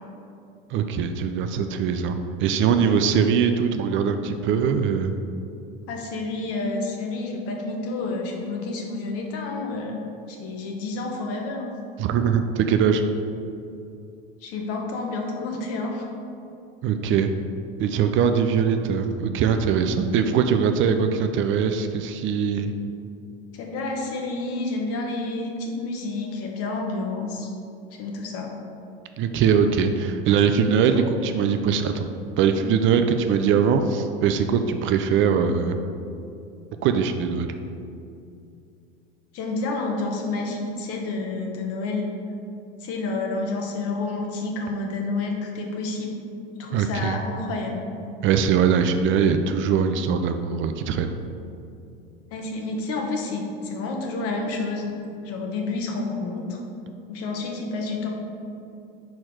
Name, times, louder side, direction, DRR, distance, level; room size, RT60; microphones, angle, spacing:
voice 1, 0.7-5.2 12.0-13.0 16.8-17.3 17.8-22.7 29.2-32.1 32.4-35.8 36.8-37.5 46.7-47.2 48.2-51.2, right 7 dB, 45° right, 7 dB, 0.4 m, -22 dB
voice 2, 5.9-10.0 10.3-11.7 14.4-16.1 23.5-27.5 27.9-28.5 39.3-42.1 42.8-46.2 46.6-47.9 52.3-56.6 57.1-58.1, left 3 dB, 55° left, 1 dB, 1.1 m, -29 dB
4.5 x 4.4 x 4.8 m, 2.6 s
hypercardioid pair, 90°, 29 cm